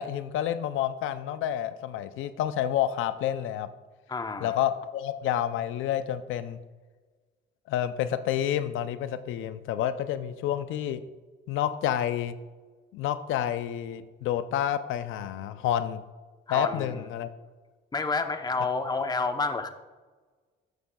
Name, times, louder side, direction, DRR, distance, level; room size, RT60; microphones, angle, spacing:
voice 1, 0.0-3.7 4.4-6.6 7.7-11.0 11.5-12.4 12.9-16.0 16.5-17.3, left 11 dB, 85° left, 11 dB, 0.5 m, -29 dB
voice 2, 4.1-4.6 16.5-17.0 17.9-19.7, left 3 dB, 20° left, 8 dB, 0.7 m, -29 dB
13.0 x 6.2 x 2.3 m, 1.3 s
cardioid pair, 90°, 20 cm